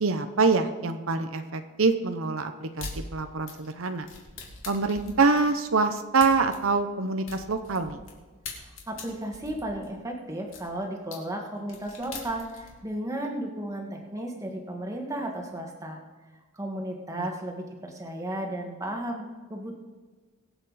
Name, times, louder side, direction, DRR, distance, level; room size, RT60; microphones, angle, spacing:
voice 1, 0.0-4.1 4.7-8.0 17.1-17.3, right 4 dB, 75° right, 7 dB, 0.8 m, -25 dB
sound 1, 2.8-3.0 3.5-8.1 8.4-10.6 11.1-11.2 11.6-12.7, left 4 dB, 70° left, 3.0 m, -42 dB
voice 2, 8.6-16.0 16.5-19.8, right 1 dB, 15° right, 1 dB, 1.7 m, -34 dB
23.0 x 7.9 x 4.1 m, 1.4 s
head